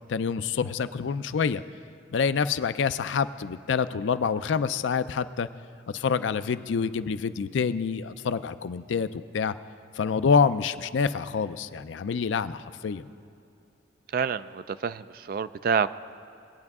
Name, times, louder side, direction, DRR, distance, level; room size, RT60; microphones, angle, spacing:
voice 1, 0.1-1.6 2.1-5.5 5.9-9.5 10.0-13.1, left 6 dB, 80° left, 13 dB, 0.4 m, -27 dB
voice 2, 14.1-15.9, right 6 dB, 50° right, 14 dB, 0.3 m, -28 dB
21.0 x 8.7 x 3.6 m, 2.6 s
head